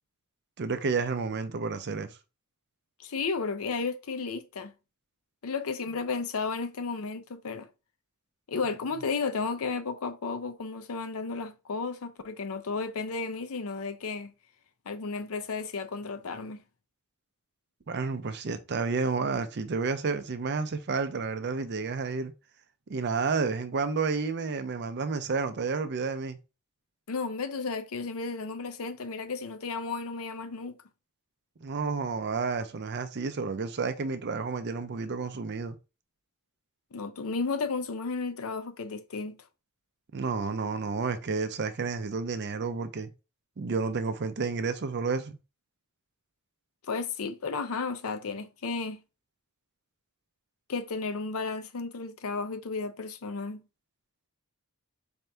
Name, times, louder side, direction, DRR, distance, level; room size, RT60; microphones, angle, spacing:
voice 1, 0.6-2.1 17.9-22.3 22.9-26.4 31.6-35.8 40.1-43.1 43.6-45.4, right 4 dB, 50° right, 0.5 m, -30 dB
voice 2, 3.0-4.7 5.4-7.7 8.5-14.3 14.9-16.6 27.1-30.7 36.9-39.4 46.9-49.0 50.7-53.6, left 4 dB, 65° left, 0.6 m, -33 dB
4.3 x 2.7 x 3.4 m
head